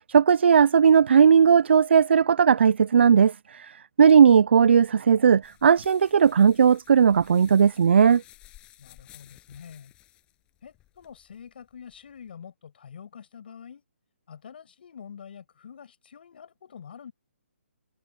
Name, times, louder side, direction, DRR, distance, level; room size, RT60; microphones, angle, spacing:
voice 1, 0.0-8.2, right 7 dB, 55° right, 0.3 m, -17 dB
sound 1, 5.4-12.3, left 15 dB, 15° left, 8.0 m, -55 dB
voice 2, 8.8-9.9 10.6-13.8 14.3-17.1, left 7 dB, 45° left, 7.2 m, -46 dB
hypercardioid pair, 170°, 7 cm